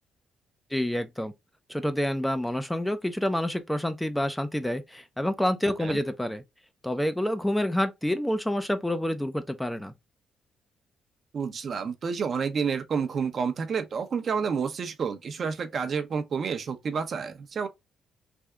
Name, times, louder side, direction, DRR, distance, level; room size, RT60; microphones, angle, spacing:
voice 1, 0.7-1.3 1.7-6.4 6.8-9.9, left 1 dB, 5° left, 0.4 m, -28 dB
voice 2, 11.3-17.7, right 6 dB, 50° right, 0.7 m, -29 dB
3.5 x 2.7 x 2.2 m
cardioid pair, 90°, 0 cm